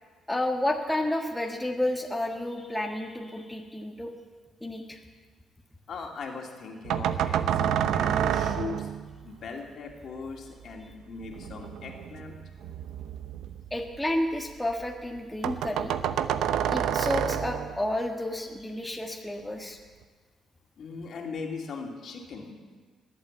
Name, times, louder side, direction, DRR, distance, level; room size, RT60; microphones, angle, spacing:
voice 1, 0.3-4.1 4.6-5.0 13.7-15.9 16.7-19.8, left 1 dB, 5° left, 1 dB, 1.5 m, -31 dB
voice 2, 5.9-8.9 9.2-12.4 20.8-22.5, left 4 dB, 60° left, 1 dB, 2.7 m, -39 dB
sound 1, 6.8-9.2 11.2-14.5 14.8-14.9 15.2-15.3 15.4-17.9, right 9 dB, 85° right, 0.7 m, -29 dB
20.0 x 8.3 x 8.8 m, 1.5 s
cardioid pair, 100°, 0 cm